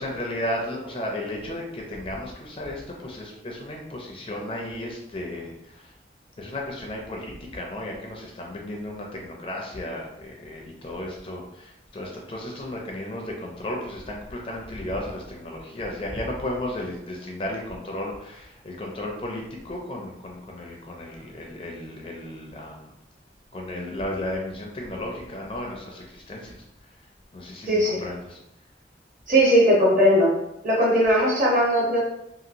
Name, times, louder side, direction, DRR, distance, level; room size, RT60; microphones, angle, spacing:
voice 1, 0.0-5.9 6.4-22.9 23.5-27.0 27.3-28.4, left 1 dB, 30° left, -1 dB, 0.4 m, -34 dB
voice 2, 27.7-28.0 29.3-30.3 30.6-32.0, equal, 45° right, -4 dB, 0.9 m, -19 dB
2.9 x 2.6 x 2.6 m, 0.82 s
head